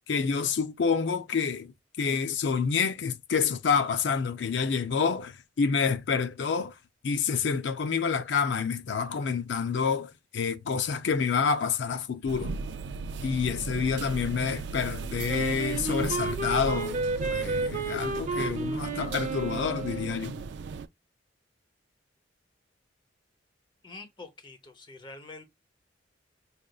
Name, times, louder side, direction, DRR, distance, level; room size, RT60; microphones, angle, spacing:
voice 1, 0.1-6.7 7.0-12.6 13.2-20.4, left 6 dB, 70° left, 0.4 m, -28 dB
sound 1, 12.3-20.9, right 4 dB, 65° right, 0.3 m, -37 dB
Wind instrument woodwind instrument, 15.3-20.3, right 3 dB, 45° right, 0.8 m, -32 dB
voice 2, 23.8-25.5, left 3 dB, 25° left, 0.8 m, -46 dB
5.0 x 2.4 x 2.3 m
head